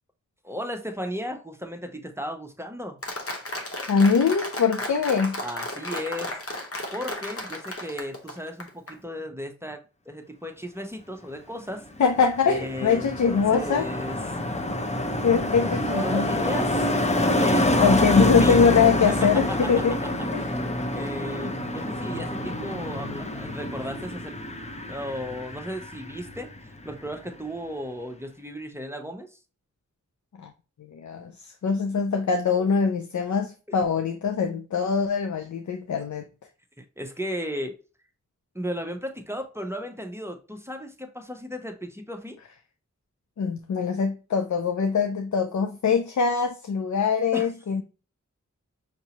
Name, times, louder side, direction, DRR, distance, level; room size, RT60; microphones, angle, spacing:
voice 1, 0.4-3.0 5.4-6.4 6.9-9.8 10.1-11.8 12.4-14.2 15.8-18.6 19.1-19.2 20.9-24.4 24.9-29.4 36.8-37.8 38.5-42.4 47.3-47.5, equal, 10° right, 0.8 m, -35 dB
Applause, 3.0-8.9, left 1 dB, 50° left, 1.0 m, -34 dB
voice 2, 3.9-5.4 12.0-13.9 15.2-16.5 17.8-20.0 20.3-20.6 21.4-21.6 30.4-30.5 30.8-36.3 43.4-47.8, left 5 dB, 75° left, 0.5 m, -23 dB
Car passing by, 11.8-26.6 26.8-27.2, left 1 dB, 25° left, 0.6 m, -27 dB
5.9 x 2.7 x 2.9 m
wide cardioid pair, 45°, 29 cm